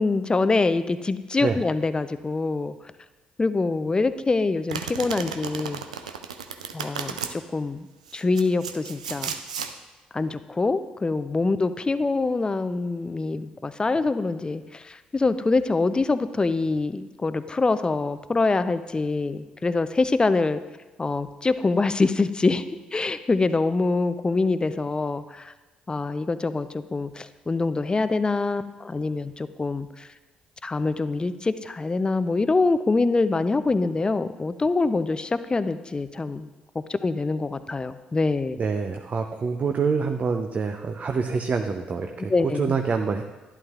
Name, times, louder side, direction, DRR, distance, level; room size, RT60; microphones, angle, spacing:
voice 1, 0.0-2.8 3.4-5.8 6.7-7.9 8.1-9.3 10.1-20.6 21.0-22.6 22.9-25.5 25.9-30.1 30.6-36.5 36.7-38.6 42.3-42.8, left 3 dB, 25° left, 12 dB, 0.5 m, -25 dB
Domestic sounds home sounds, 4.7-7.3 8.1-9.7, right 7 dB, 90° right, 0.4 m, -34 dB
voice 2, 38.6-43.2, right 5 dB, 45° right, 5 dB, 0.6 m, -26 dB
11.5 x 10.5 x 2.4 m, 1.2 s
hypercardioid pair, 45°, 4 cm